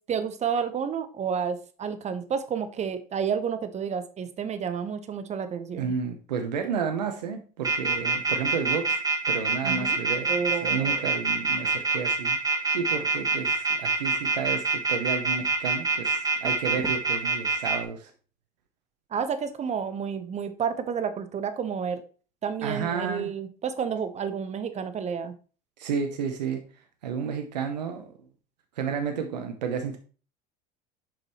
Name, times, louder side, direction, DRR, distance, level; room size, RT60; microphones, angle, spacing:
voice 1, 0.1-5.9 9.6-10.0 10.3-11.1 19.1-22.0 22.4-25.3, right 7 dB, 30° right, 10 dB, 1.0 m, -30 dB
voice 2, 5.8-9.0 9.3-10.3 10.6-18.1 22.6-23.3 25.8-26.6 27.0-28.1 28.8-30.0, right 6 dB, 85° right, 6 dB, 0.8 m, -31 dB
sound 1, 7.6-17.8, right 4 dB, 15° right, 1.9 m, -25 dB
7.3 x 5.3 x 3.0 m, 0.38 s
hypercardioid pair, 80°, 21 cm